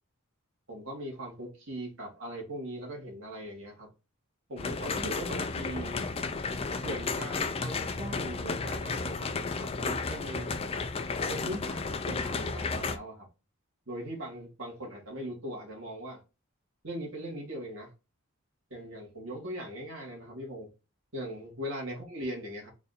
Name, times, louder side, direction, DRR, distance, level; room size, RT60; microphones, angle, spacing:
voice 1, 0.7-3.9 4.5-6.1 6.8-10.5 11.3-13.3 13.9-16.2 16.8-17.9 18.7-20.7 21.1-22.7, equal, 65° right, 1.8 m, -40 dB
sound 1, 4.6-13.0, left 4 dB, 25° left, 0.3 m, -33 dB
4.0 x 2.6 x 4.0 m
head